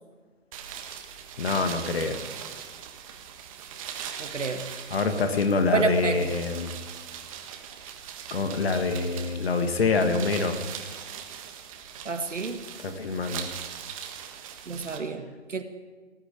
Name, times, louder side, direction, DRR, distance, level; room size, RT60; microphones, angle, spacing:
sound 1, 0.5-15.0, right 8 dB, 30° right, 1.5 m, -40 dB
voice 1, 1.4-2.2 4.9-6.8 8.3-10.6 12.8-13.5, left 4 dB, 55° left, 7 dB, 1.8 m, -26 dB
voice 2, 4.2-4.8 5.7-6.3 12.0-12.6 14.7-15.6, right 5 dB, 85° right, 8 dB, 1.7 m, -29 dB
18.5 x 9.0 x 8.4 m, 1.5 s
figure-of-eight pair, 140°, 36 cm